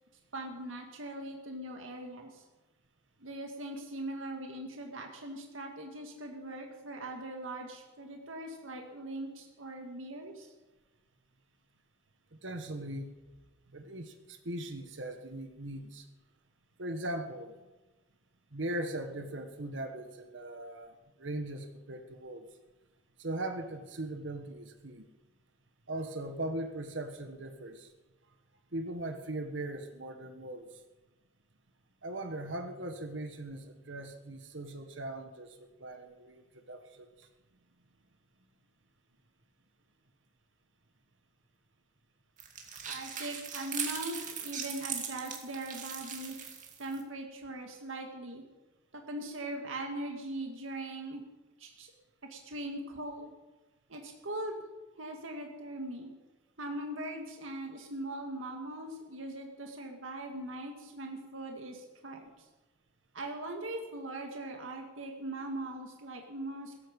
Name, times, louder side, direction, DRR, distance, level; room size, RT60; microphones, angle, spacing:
voice 1, 0.3-2.4 3.2-10.5 42.9-46.4 46.8-48.4 48.9-51.2 51.6-51.9 52.3-53.3 53.9-54.6 55.0-56.1 56.6-62.5 63.1-66.7, right 1 dB, 90° right, 2 dB, 2.1 m, -40 dB
voice 2, 12.3-13.1 13.7-16.1 16.8-17.6 18.5-22.5 23.2-25.1 25.9-27.9 28.7-30.8 32.0-37.3, right 1 dB, 70° right, 6 dB, 1.5 m, -39 dB
sound 1, 42.4-47.0, right 7 dB, 40° right, 2.5 m, -39 dB
17.0 x 14.5 x 5.4 m, 1.2 s
head